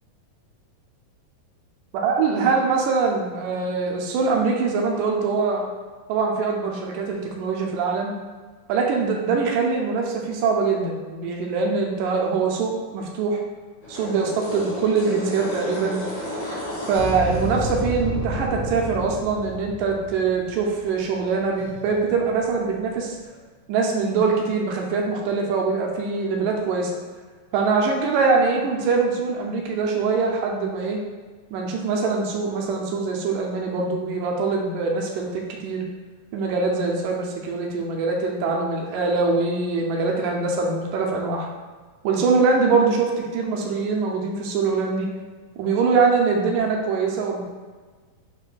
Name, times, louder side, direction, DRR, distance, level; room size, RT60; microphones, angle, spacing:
voice 1, 1.9-5.7 6.1-8.1 8.7-13.4 13.9-16.0 16.9-23.2 23.7-26.9 27.5-31.0 31.5-35.9 36.3-41.5 42.0-45.1 45.6-47.4, right 4 dB, 80° right, 0 dB, 2.1 m, -23 dB
sound 1, 13.8-21.2 21.6-23.0, left 1 dB, 60° left, 2.3 m, -32 dB
5.2 x 4.0 x 2.2 m, 1.4 s
omnidirectional pair, 4.1 m